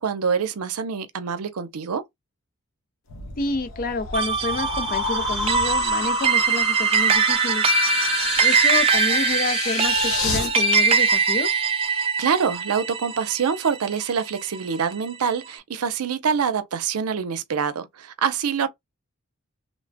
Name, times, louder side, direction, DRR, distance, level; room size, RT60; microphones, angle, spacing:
voice 1, 0.0-2.0 12.0-18.7, right 6 dB, 85° right, 0.5 m, -25 dB
sound 1, 3.1-10.5, left 4 dB, 70° left, 0.8 m, -29 dB
voice 2, 3.4-7.6 8.4-11.6, left 3 dB, 40° left, 0.4 m, -29 dB
sound 2, 4.1-14.7, right 5 dB, 25° right, 0.3 m, -22 dB
3.2 x 2.1 x 2.6 m
head